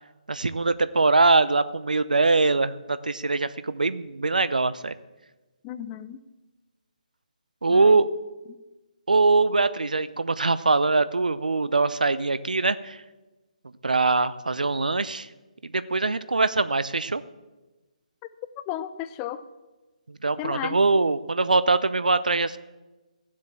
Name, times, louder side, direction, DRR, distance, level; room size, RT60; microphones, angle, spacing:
voice 1, 0.3-4.9 7.6-8.1 9.1-13.0 13.8-15.3 15.6-17.2 20.1-22.6, right 3 dB, 85° right, 15 dB, 0.6 m, -22 dB
voice 2, 5.6-6.2 7.7-8.0 18.6-19.4 20.4-20.8, left 11 dB, 20° left, 13 dB, 0.6 m, -34 dB
15.5 x 7.5 x 7.4 m, 1.1 s
figure-of-eight pair, 150°, 4 cm